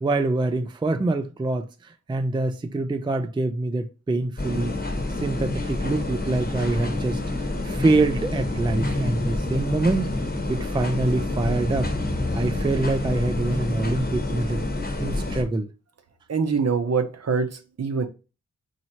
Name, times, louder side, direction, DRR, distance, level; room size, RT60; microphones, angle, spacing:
voice 1, 0.0-4.8 5.2-10.1 10.5-11.9 12.3-14.6 15.0-15.7, right 2 dB, 15° right, 0.4 m, -25 dB
sound 1, 4.4-15.4, left 2 dB, 30° left, 1.0 m, -28 dB
voice 2, 16.3-18.1, right 5 dB, 55° right, 0.7 m, -24 dB
4.4 x 2.8 x 2.8 m
wide cardioid pair, 70°, 31 cm